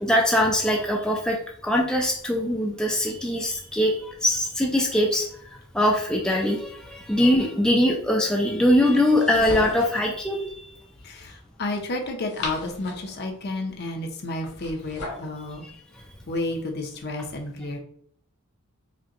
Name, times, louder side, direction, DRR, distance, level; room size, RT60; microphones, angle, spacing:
voice 1, 0.0-5.3 5.7-10.5, left 1 dB, 5° left, -1 dB, 0.4 m, -22 dB
sound 1, 9.0-10.1 12.0-13.2 14.4-15.3, left 1 dB, 75° left, 1.3 m, -36 dB
voice 2, 11.0-15.6 16.3-17.8, left 2 dB, 50° left, 3 dB, 0.6 m, -31 dB
5.0 x 2.2 x 2.8 m, 0.64 s
head